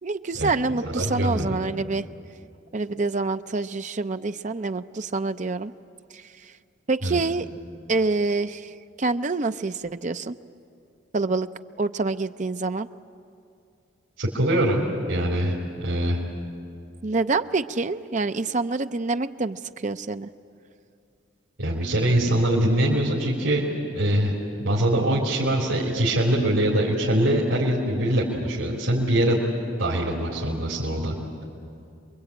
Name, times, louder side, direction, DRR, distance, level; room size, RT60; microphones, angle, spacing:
voice 1, 0.0-2.1 2.7-5.7 6.1-6.2 6.9-7.5 7.9-10.3 11.1-11.5 11.8-12.9 17.0-20.3, right 3 dB, 40° right, 10 dB, 0.6 m, -26 dB
voice 2, 0.8-1.6 7.0-7.2 14.2-16.2 21.6-23.7 23.9-24.3 24.6-29.4 29.8-31.1, right 1 dB, 80° right, -5 dB, 3.7 m, -23 dB
27.5 x 22.5 x 8.7 m, 2.5 s
head